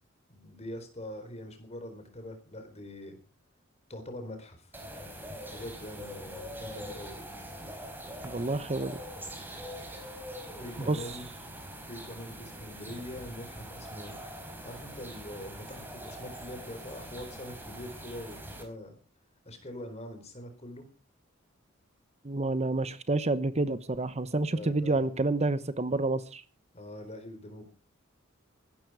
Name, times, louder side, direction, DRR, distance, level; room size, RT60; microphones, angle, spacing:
voice 1, 0.3-3.2 3.9-4.8 5.5-7.2 10.5-11.2 11.9-14.3 14.6-18.9 19.5-20.9 24.5-25.1 26.7-27.7, left 1 dB, 35° left, 7 dB, 4.2 m, -43 dB
sound 1, 4.7-18.6, equal, 10° right, 4.4 m, -43 dB
voice 2, 8.2-9.0 10.8-11.2 22.2-26.4, right 2 dB, 35° right, 13 dB, 0.9 m, -29 dB
16.0 x 12.5 x 5.0 m, 0.35 s
head